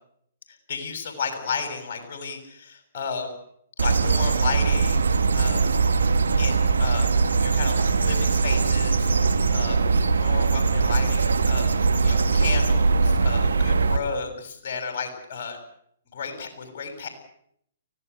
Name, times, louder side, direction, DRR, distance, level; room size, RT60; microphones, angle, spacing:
voice 1, 0.7-3.3 3.8-5.1 5.3-5.6 6.4-7.1 7.4-9.8 10.2-11.7 12.0-15.6 16.1-17.1, left 5 dB, 55° left, 6 dB, 6.9 m, -33 dB
sound 1, 3.8-14.0, right 4 dB, 85° right, 2.2 m, -21 dB
24.5 x 17.0 x 8.3 m, 0.69 s
hypercardioid pair, 135°, 0 cm